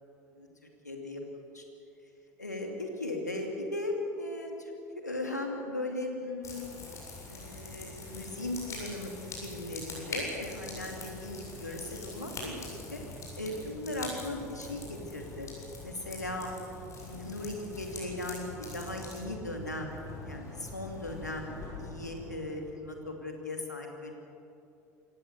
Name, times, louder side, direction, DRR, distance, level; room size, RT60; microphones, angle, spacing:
voice 1, 0.8-1.6 2.4-6.7 7.3-9.1 9.4-13.0 13.4-15.5 15.8-16.5 17.0-24.1, left 2 dB, 90° left, 2 dB, 2.7 m, -38 dB
sound 1, 6.4-22.7, left 2 dB, 35° left, 7.8 m, -43 dB
27.0 x 15.5 x 8.1 m, 2.7 s
figure-of-eight pair, 65°, 9 cm